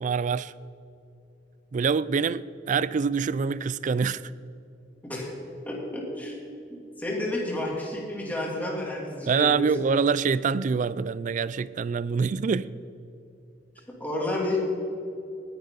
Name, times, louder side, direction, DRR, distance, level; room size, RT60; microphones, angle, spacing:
voice 1, 0.0-0.5 1.7-4.2 9.3-12.7, right 5 dB, 45° right, 0.3 m, -25 dB
voice 2, 5.6-6.4 7.0-9.7 13.9-14.6, left 1 dB, 10° left, 2.9 m, -30 dB
19.5 x 10.5 x 4.0 m
head